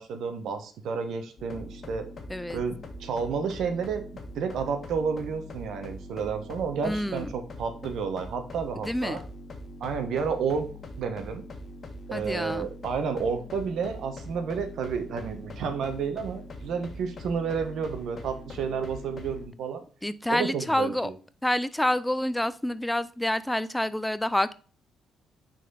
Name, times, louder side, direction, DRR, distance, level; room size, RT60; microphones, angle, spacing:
voice 1, 0.0-2.1 2.5-4.0 4.3-9.2 9.8-10.7 11.0-11.4 12.1-19.8 20.3-21.1, right 6 dB, 75° right, 8 dB, 1.1 m, -31 dB
sound 1, 1.4-19.4, left 1 dB, 45° left, 1.4 m, -42 dB
voice 2, 2.3-2.6 6.8-7.3 8.9-9.2 12.1-12.7 20.0-21.1 21.4-24.5, left 1 dB, 5° left, 15 dB, 0.4 m, -28 dB
6.1 x 4.2 x 4.0 m, 0.39 s
cardioid pair, 90°, 0 cm